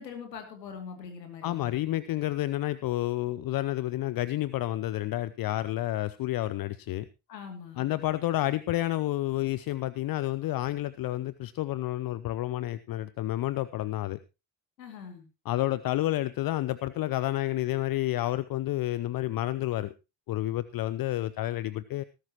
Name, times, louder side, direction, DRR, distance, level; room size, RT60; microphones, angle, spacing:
voice 1, 0.0-1.8 7.3-7.9 14.8-15.2, left 6 dB, 80° left, 6 dB, 2.8 m, -42 dB
voice 2, 1.4-7.1 7.8-14.2 15.5-19.9 20.3-22.0, left 15 dB, 45° left, 17 dB, 0.7 m, -30 dB
19.0 x 11.5 x 3.0 m, 0.27 s
figure-of-eight pair, 45°, 49 cm